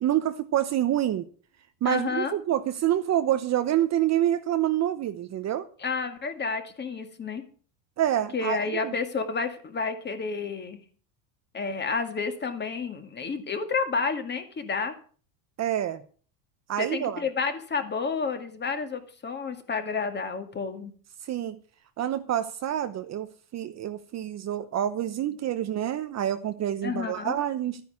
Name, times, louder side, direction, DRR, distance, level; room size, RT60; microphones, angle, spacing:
voice 1, 0.0-1.3 1.8-5.7 8.0-8.6 8.8-8.9 15.6-16.0 16.7-17.2 21.3-21.5 22.0-23.3 23.5-27.8, right 11 dB, 35° right, 0.9 m, -27 dB
voice 2, 1.8-2.4 5.8-7.4 8.3-10.8 11.5-14.9 16.8-20.9 26.8-27.4, left 5 dB, 20° left, 2.1 m, -30 dB
13.0 x 9.6 x 7.0 m
supercardioid pair, 135°, 48 cm